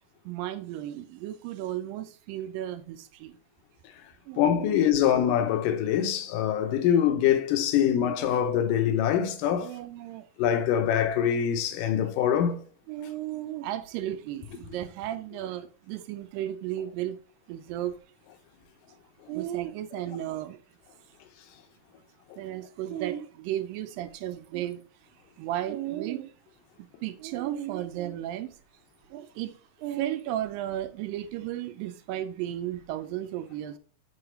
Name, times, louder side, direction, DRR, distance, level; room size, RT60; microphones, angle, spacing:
voice 1, 0.3-3.4 4.3-4.8 7.8-7.9 9.6-10.3 12.9-17.2 17.5-18.0 19.3-20.6 22.4-24.8 25.4-26.3 27.0-28.5 29.1-29.5 29.8-33.8, right 12 dB, 90° right, 2.4 m, -34 dB
voice 2, 4.4-9.7 10.4-12.6, left 9 dB, 80° left, 2.3 m, -24 dB
8.1 x 4.0 x 4.3 m
omnidirectional pair, 3.9 m